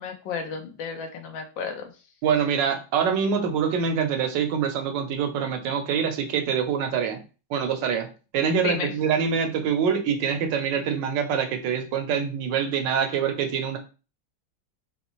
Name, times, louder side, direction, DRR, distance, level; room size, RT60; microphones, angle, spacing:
voice 1, 0.0-1.9 8.6-8.9, left 5 dB, 90° left, 5 dB, 1.5 m, -32 dB
voice 2, 2.2-7.2 7.5-8.1 8.3-13.8, right 7 dB, 75° right, 6 dB, 1.4 m, -25 dB
4.1 x 3.2 x 3.0 m, 0.33 s
omnidirectional pair, 2.0 m